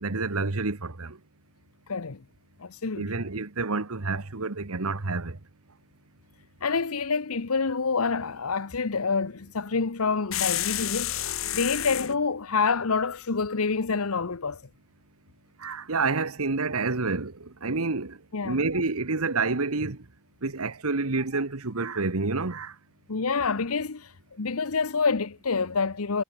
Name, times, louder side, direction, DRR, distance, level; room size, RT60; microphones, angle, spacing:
voice 1, 0.0-1.2 2.9-5.4 15.6-18.2 18.4-20.0 20.4-22.7, right 3 dB, 90° right, 1.4 m, -28 dB
voice 2, 1.9-2.2 2.6-3.2 6.6-11.1 11.5-14.6 18.3-18.6 23.1-26.2, left 4 dB, 90° left, 1.0 m, -27 dB
sound 1, 10.3-12.2, left 12 dB, 70° left, 2.5 m, -29 dB
head